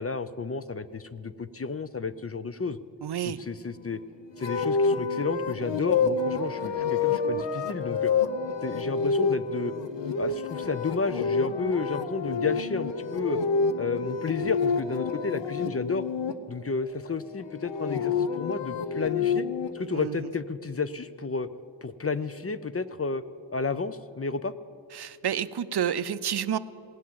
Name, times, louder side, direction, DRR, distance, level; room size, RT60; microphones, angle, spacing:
voice 1, 0.0-2.8 3.5-4.0 4.4-8.1 8.6-9.7 10.2-13.4 13.8-16.0 16.5-19.4 19.7-21.5 21.8-23.2 23.5-24.5, left 4 dB, 35° left, 13 dB, 0.5 m, -31 dB
voice 2, 3.0-3.4 19.9-20.3 24.9-26.6, right 9 dB, 65° right, 15 dB, 0.5 m, -29 dB
sound 1, 4.4-16.3 17.5-19.7, left 5 dB, 75° left, 0.7 m, -28 dB
18.0 x 8.4 x 7.5 m, 2.5 s
wide cardioid pair, 75°, 44 cm